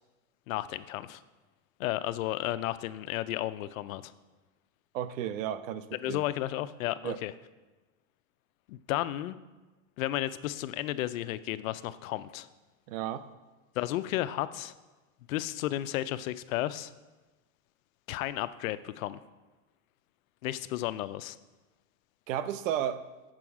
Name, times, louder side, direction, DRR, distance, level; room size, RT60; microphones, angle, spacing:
voice 1, 0.5-1.2 1.8-4.1 5.9-7.3 8.7-9.4 10.0-12.5 13.8-14.7 15.3-16.9 18.1-19.2 20.4-21.4, left 14 dB, 85° left, 14 dB, 0.6 m, -33 dB
voice 2, 4.9-6.2 7.0-7.2 12.9-13.3 22.3-23.1, right 10 dB, 70° right, 14 dB, 0.7 m, -33 dB
7.6 x 6.2 x 4.8 m, 1.2 s
supercardioid pair, 145°, 40 cm